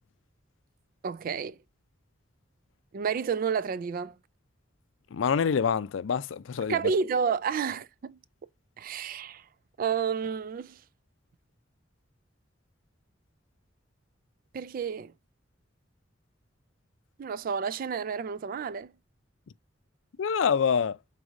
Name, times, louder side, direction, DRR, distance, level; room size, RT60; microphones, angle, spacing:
voice 1, 1.0-1.6 2.9-4.2 6.7-8.2 8.8-9.4 9.8-10.8 14.5-15.1 17.2-18.9, right 6 dB, 45° right, 0.3 m, -30 dB
voice 2, 5.1-6.8 20.2-21.0, left 6 dB, 80° left, 0.4 m, -26 dB
4.9 x 4.0 x 2.6 m
head